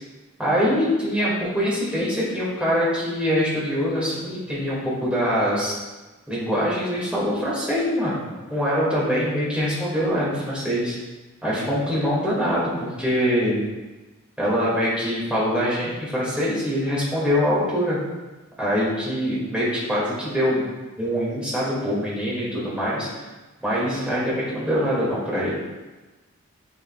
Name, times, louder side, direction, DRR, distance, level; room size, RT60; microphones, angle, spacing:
voice 1, 0.4-5.8 6.3-11.0 11.4-13.6 14.4-18.0 18.6-20.6 21.0-23.1 23.6-25.6, equal, 5° right, -7 dB, 2.3 m, -24 dB
9.8 x 5.7 x 2.4 m, 1.2 s
head